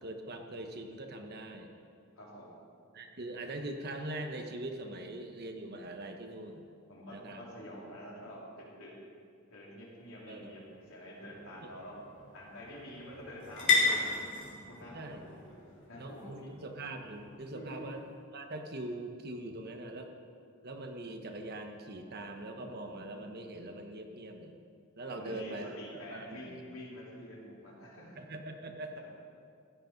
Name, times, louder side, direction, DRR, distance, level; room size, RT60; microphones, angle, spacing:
voice 1, 0.0-1.7 2.9-6.6 7.1-7.5 10.3-10.6 11.6-11.7 14.9-15.3 16.0-18.0 18.3-20.1 20.6-24.5 25.0-25.7 26.1-26.6 28.2-29.0, right 1 dB, 50° right, 5 dB, 1.1 m, -42 dB
voice 2, 2.2-2.5 6.9-8.4 8.8-8.9 9.5-12.0 12.3-15.4 15.9-16.5 17.5-17.8 25.1-28.2, equal, 75° left, -5 dB, 3.7 m, -47 dB
sound 1, 10.1-17.9, left 4 dB, 55° left, 3.7 m, -35 dB
15.0 x 10.5 x 5.3 m, 2.3 s
head